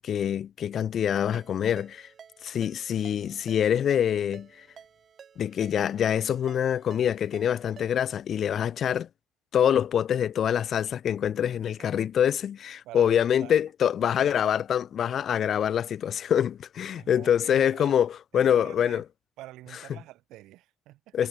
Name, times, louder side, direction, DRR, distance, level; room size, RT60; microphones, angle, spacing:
voice 1, 0.0-2.1 2.4-4.7 5.4-9.1 9.5-19.0 19.7-20.0 21.1-21.3, left 9 dB, 40° left, 0.9 m, -25 dB
Ringtone, 1.3-8.2, right 7 dB, 35° right, 2.4 m, -52 dB
voice 2, 16.9-18.0 18.3-19.0 19.4-21.1, right 16 dB, 70° right, 1.1 m, -47 dB
cardioid pair, 145°, 0 cm